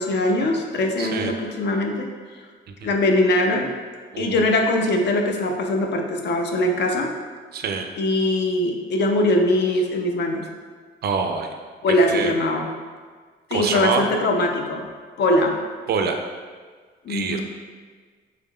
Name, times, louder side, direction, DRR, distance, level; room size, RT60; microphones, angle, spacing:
voice 1, 0.0-2.1 2.8-3.7 4.2-7.1 8.0-10.5 11.8-12.7 13.5-14.9 15.2-15.6 17.1-17.4, left 1 dB, 60° left, 2 dB, 0.5 m, -21 dB
voice 2, 1.0-1.3 2.8-2.9 4.1-4.5 7.5-7.9 11.0-11.5 12.1-12.3 13.5-14.0 15.9-16.2 17.1-17.4, right 5 dB, 55° right, 5 dB, 0.4 m, -25 dB
3.5 x 3.5 x 2.2 m, 1.5 s
cardioid pair, 90°, 20 cm